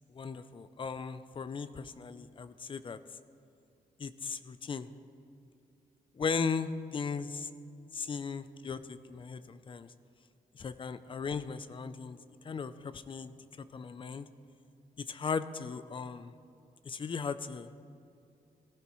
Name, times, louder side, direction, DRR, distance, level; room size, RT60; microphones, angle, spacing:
voice 1, 0.1-3.0 4.0-4.9 6.2-7.5 7.9-9.9 10.6-12.2 12.4-13.3 13.7-14.3 15.0-16.3 16.8-17.7, left 5 dB, 35° left, 13 dB, 0.5 m, -37 dB
19.0 x 15.0 x 3.1 m, 2.5 s
wide cardioid pair, 165°, 16 cm